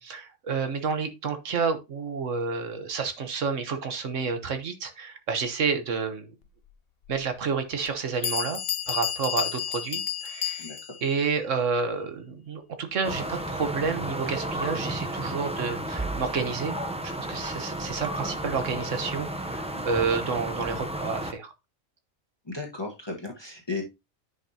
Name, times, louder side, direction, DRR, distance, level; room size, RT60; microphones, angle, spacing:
voice 1, 0.0-6.3 7.1-8.6 8.9-10.7 11.0-16.7 17.0-21.5, right 5 dB, 70° right, 8 dB, 1.5 m, -30 dB
Bell, 7.1-7.2 7.9-8.0 8.2-11.0, left 9 dB, 55° left, 0.8 m, -31 dB
sound 1, 13.0-21.3, right 1 dB, 5° right, 0.5 m, -33 dB
voice 2, 22.4-23.8, left 3 dB, 20° left, 1 dB, 1.4 m, -35 dB
9.8 x 5.5 x 2.8 m, 0.24 s
omnidirectional pair, 1.3 m